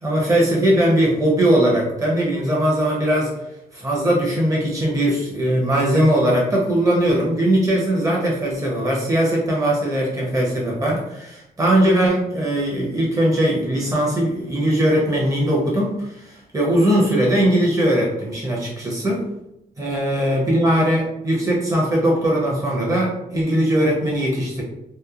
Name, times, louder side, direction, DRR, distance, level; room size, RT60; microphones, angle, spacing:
voice 1, 0.0-3.3 3.7-19.2 19.8-24.6, right 1 dB, 20° right, -4 dB, 0.8 m, -20 dB
2.9 x 2.1 x 2.4 m, 0.84 s
wide cardioid pair, 145°, 17 cm